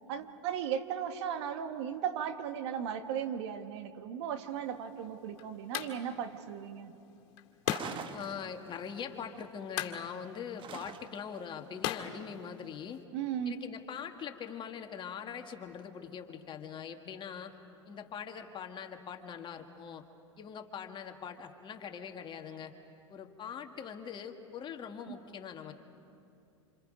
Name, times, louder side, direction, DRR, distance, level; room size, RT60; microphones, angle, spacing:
voice 1, 0.1-7.0 13.1-13.5 25.1-25.2, right 8 dB, 60° right, 8 dB, 1.5 m, -36 dB
sound 1, 4.5-13.0, left 11 dB, 60° left, 2.2 m, -42 dB
sound 2, 7.7-8.9 10.6-11.4, right 7 dB, 30° right, 1.1 m, -44 dB
voice 2, 8.1-13.0 13.5-17.6 17.9-20.0 20.4-22.7 23.1-25.7, left 7 dB, 30° left, 5 dB, 1.8 m, -42 dB
27.5 x 27.0 x 5.2 m, 2.7 s
hypercardioid pair, 100°, 16 cm